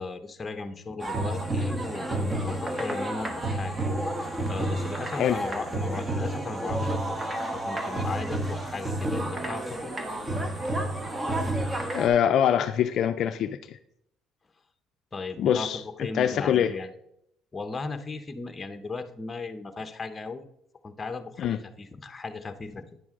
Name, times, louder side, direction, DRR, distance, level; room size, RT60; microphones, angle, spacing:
voice 1, 0.0-3.8 4.5-7.0 7.5-9.9 15.1-16.9 17.5-20.4 20.8-23.0, left 3 dB, 20° left, 9 dB, 0.8 m, -36 dB
sound 1, 1.0-12.1, right 1 dB, 20° right, 1.1 m, -30 dB
voice 2, 11.9-13.8 15.4-16.7 21.4-21.6, left 9 dB, 60° left, 9 dB, 0.4 m, -24 dB
9.7 x 6.1 x 3.7 m, 0.77 s
cardioid pair, 100°, 0 cm